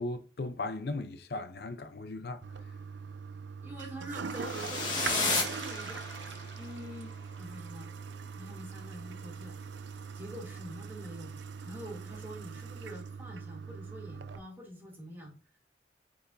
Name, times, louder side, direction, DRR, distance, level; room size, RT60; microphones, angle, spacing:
voice 1, 0.0-2.4, left 2 dB, 60° left, 0.5 m, -37 dB
Toilet flush, 2.4-14.4, right 5 dB, 90° right, 0.6 m, -42 dB
voice 2, 3.6-7.9 8.4-9.6 10.1-11.3 11.6-15.3, equal, 10° right, 2.4 m, -46 dB
sound 1, 4.3-6.5, left 3 dB, 25° left, 1.8 m, -32 dB
8.5 x 4.7 x 2.6 m
head